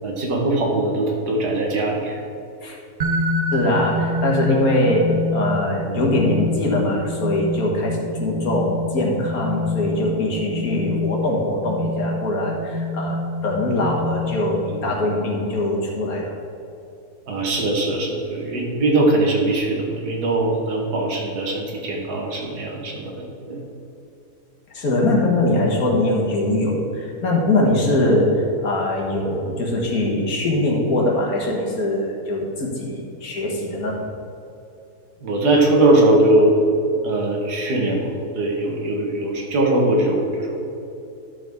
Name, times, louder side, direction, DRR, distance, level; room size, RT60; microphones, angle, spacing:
voice 1, 0.0-2.2 17.3-23.6 35.2-36.6 37.0-40.6, right 2 dB, 85° right, 0 dB, 1.9 m, -21 dB
sound 1, 3.0-14.7, left 1 dB, 50° right, 0.7 m, -27 dB
voice 2, 3.5-16.4 24.7-34.0, left 1 dB, 65° left, -2 dB, 2.0 m, -22 dB
12.0 x 6.7 x 3.6 m, 2.7 s
omnidirectional pair, 1.7 m